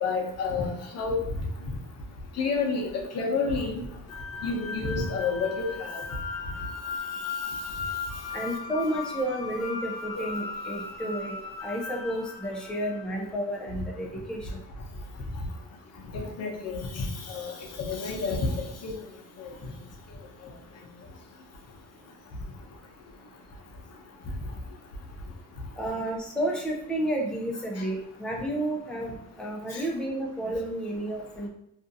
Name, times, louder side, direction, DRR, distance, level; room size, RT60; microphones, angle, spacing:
voice 1, 0.0-1.2 2.4-3.8 4.4-6.0 16.1-17.5 17.8-18.5 18.8-19.0 19.4-19.5 27.8-27.9 29.7-29.8, left 4 dB, 55° left, 1 dB, 0.6 m, -29 dB
sound 1, 4.1-13.3, left 5 dB, 90° left, 0.8 m, -37 dB
voice 2, 8.3-11.4 11.6-14.5 25.8-31.5, right 1 dB, 5° left, -1 dB, 0.5 m, -31 dB
2.5 x 2.4 x 2.5 m, 0.76 s
cardioid pair, 90°, 30 cm